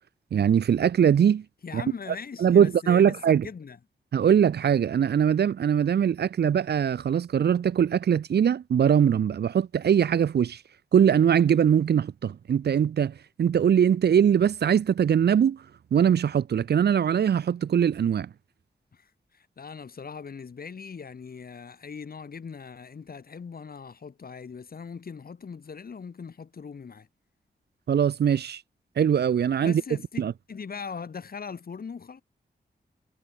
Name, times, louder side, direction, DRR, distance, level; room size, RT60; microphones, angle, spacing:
voice 1, 0.3-1.4 1.7-1.8 2.4-3.5 4.1-10.6 10.9-15.6 15.9-18.3 27.9-28.6 29.0-29.8 30.2-30.3, right 8 dB, 70° right, 0.7 m, -22 dB
voice 2, 1.6-3.8 18.9-27.1 29.6-30.2 30.5-32.2, left 5 dB, 55° left, 6.1 m, -40 dB
wide cardioid pair, 130°, 18 cm